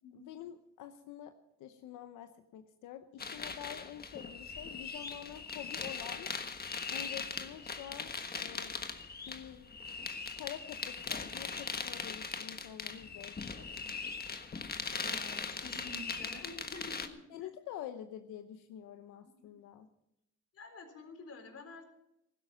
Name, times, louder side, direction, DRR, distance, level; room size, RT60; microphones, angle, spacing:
voice 1, 0.1-1.3 1.6-6.3 6.9-8.7 9.3-9.6 10.3-14.0 17.3-19.9, left 10 dB, 90° left, 8 dB, 0.9 m, -47 dB
sound 1, 3.2-17.1, left 5 dB, 30° left, 1.4 m, -40 dB
voice 2, 14.9-17.5 20.5-21.8, left 2 dB, 50° left, 5 dB, 4.1 m, -49 dB
16.0 x 12.5 x 5.7 m, 0.84 s
cardioid pair, 90°, 30 cm